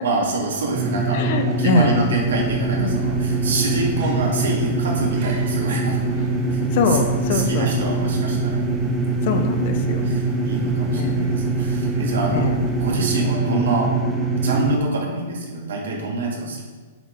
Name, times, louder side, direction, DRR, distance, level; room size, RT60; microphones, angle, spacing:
voice 1, 0.0-6.1 6.5-7.0 7.3-8.6 10.0-13.9 14.4-16.6, right 2 dB, 80° right, -2 dB, 1.9 m, -26 dB
sound 1, 0.7-14.8, right 3 dB, 15° right, 0.7 m, -23 dB
voice 2, 1.1-2.0 2.8-2.9 6.7-7.9 9.2-10.1 10.9-11.2 12.3-12.6, left 4 dB, 50° left, 6 dB, 0.8 m, -23 dB
sound 2, 1.6-13.3, right 1 dB, 45° right, 1.6 m, -40 dB
7.7 x 4.3 x 3.7 m, 1.4 s
hypercardioid pair, 140°, 0 cm